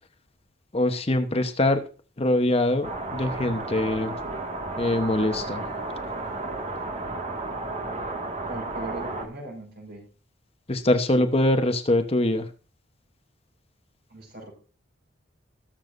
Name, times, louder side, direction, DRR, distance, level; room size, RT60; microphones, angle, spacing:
voice 1, 0.7-1.8 2.2-4.1 4.8-5.6 10.7-12.5, left 1 dB, 30° left, 8 dB, 1.0 m, -23 dB
sound 1, 2.8-9.3, right 2 dB, 35° right, 1.9 m, -33 dB
voice 2, 8.5-10.0 14.1-14.5, right 2 dB, 50° right, 1 dB, 5.6 m, -39 dB
21.5 x 7.2 x 2.6 m, 0.35 s
head